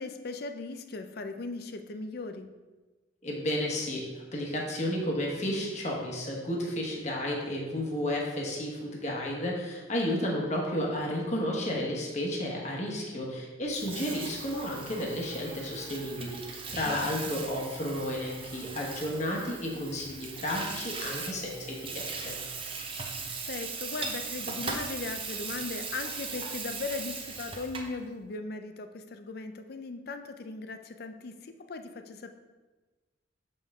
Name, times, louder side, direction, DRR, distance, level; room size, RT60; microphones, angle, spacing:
voice 1, 0.0-2.5 16.8-17.1 23.5-32.3, left 3 dB, 55° left, 8 dB, 0.5 m, -38 dB
voice 2, 3.2-22.4, left 1 dB, 35° left, -2 dB, 1.2 m, -32 dB
Water tap faucet / Sink (filling or washing), 13.7-28.0, right 4 dB, 30° right, 0.7 m, -39 dB
7.1 x 5.3 x 3.6 m, 1.2 s
head